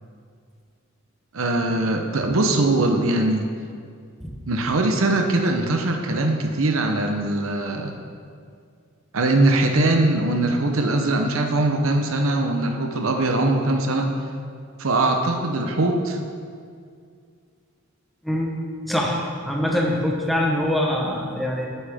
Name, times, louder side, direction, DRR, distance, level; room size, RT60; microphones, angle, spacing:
voice 1, 1.3-3.5 4.5-8.0 9.1-14.1 14.8-16.2, right 2 dB, 75° right, 4 dB, 0.8 m, -21 dB
voice 2, 18.2-21.7, left 1 dB, ahead, -2 dB, 1.0 m, -24 dB
9.0 x 8.7 x 3.6 m, 2.2 s
head